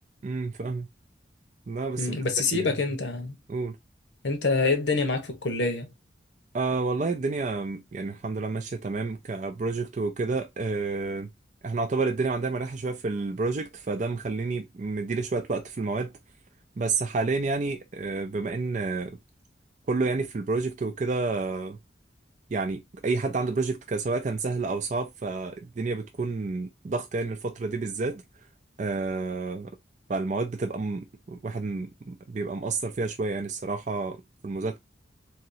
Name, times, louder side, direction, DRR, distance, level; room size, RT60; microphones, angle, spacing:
voice 1, 0.2-0.9 1.7-2.2 2.5-2.7 3.5-3.8 6.5-11.3 11.6-16.1 16.8-19.2 19.9-21.8 22.5-28.2 28.8-29.7 30.1-34.8, right 3 dB, 40° right, 0.4 m, -29 dB
voice 2, 2.0-3.4 4.2-5.9, left 3 dB, 85° left, 1.0 m, -26 dB
3.5 x 3.0 x 2.7 m
head